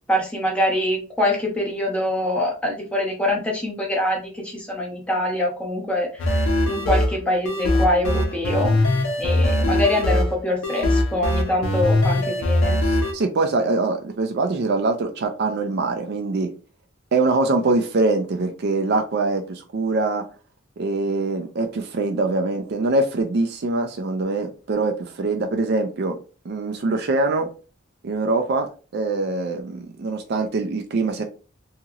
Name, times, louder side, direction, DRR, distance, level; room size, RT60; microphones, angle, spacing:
voice 1, 0.1-12.8, left 1 dB, 5° left, -2 dB, 0.8 m, -24 dB
sound 1, 6.2-13.1, left 1 dB, 85° left, 0.6 m, -21 dB
voice 2, 12.8-16.5 17.1-20.2 20.8-26.2 26.4-27.5 28.0-28.7 28.9-31.2, right 3 dB, 50° right, 6 dB, 0.4 m, -23 dB
2.8 x 2.8 x 2.4 m, 0.35 s
head